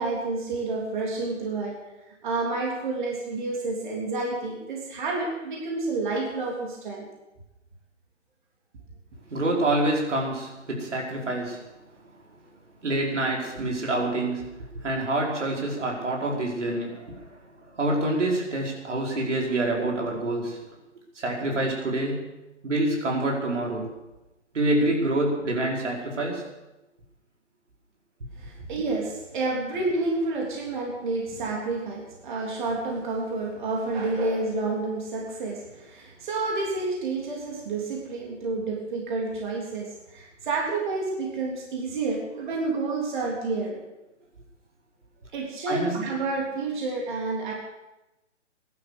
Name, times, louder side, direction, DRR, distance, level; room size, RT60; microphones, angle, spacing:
voice 1, 0.0-1.8 2.2-7.1 28.4-43.8 45.3-47.5, right 3 dB, 40° right, -1 dB, 3.4 m, -29 dB
voice 2, 9.3-11.6 12.8-14.5 14.7-17.3 17.7-20.6 21.1-22.3 22.6-23.9 24.5-26.4 45.7-46.0, right 2 dB, 75° right, -1 dB, 5.2 m, -26 dB
16.5 x 11.5 x 6.8 m, 0.99 s
hypercardioid pair, 160°, 37 cm